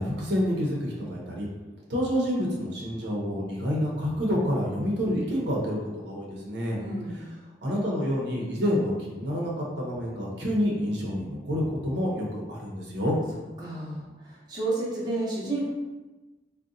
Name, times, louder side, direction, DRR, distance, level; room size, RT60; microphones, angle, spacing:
voice 1, 0.0-1.5 1.9-6.8 7.1-7.2 7.6-13.2, equal, 70° right, -3 dB, 0.7 m, -28 dB
voice 2, 6.8-7.3 13.6-15.7, right 2 dB, 25° right, -6 dB, 0.7 m, -31 dB
3.8 x 2.1 x 2.6 m, 1.2 s
head